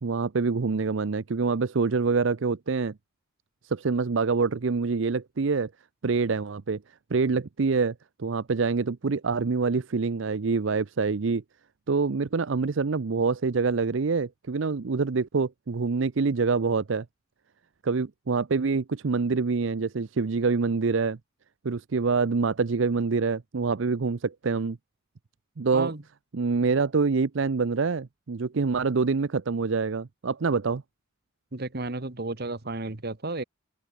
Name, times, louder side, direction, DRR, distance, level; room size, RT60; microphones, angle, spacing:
voice 1, 0.0-2.9 3.6-5.7 6.0-6.8 7.1-11.4 11.9-17.1 17.8-21.2 21.6-24.8 25.6-25.9 26.3-30.8, right 4 dB, 70° right, 0.6 m, -26 dB
voice 2, 31.5-33.4, right 2 dB, 50° right, 1.4 m, -32 dB
open air
head